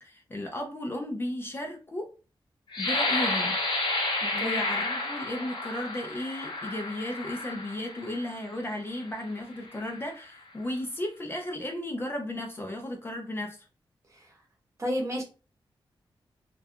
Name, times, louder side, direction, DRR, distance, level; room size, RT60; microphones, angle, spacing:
voice 1, 0.0-2.1 2.8-3.6 4.3-13.6, left 1 dB, 25° left, 0.4 m, -34 dB
sound 1, 2.7-8.4 9.0-9.2 9.7-10.1, left 2 dB, 60° left, 0.8 m, -31 dB
voice 2, 4.2-4.6 14.1-14.4 14.8-15.2, equal, 35° right, 0.9 m, -32 dB
2.3 x 2.2 x 2.6 m
wide cardioid pair, 110°, 9 cm